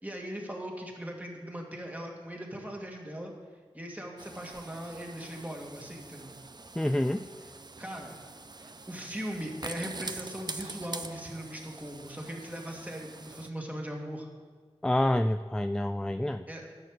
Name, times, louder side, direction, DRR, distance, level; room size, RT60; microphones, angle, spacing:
voice 1, 0.0-3.3 3.7-6.3 7.8-8.2 8.6-14.3 16.5-16.7, equal, 15° right, 0 dB, 2.1 m, -39 dB
sound 1, 4.2-13.5, right 3 dB, 40° right, 0.6 m, -44 dB
voice 2, 6.8-7.2 14.8-16.5, left 1 dB, 5° left, 10 dB, 0.3 m, -27 dB
11.0 x 6.6 x 6.6 m, 1.5 s
cardioid pair, 45°, 11 cm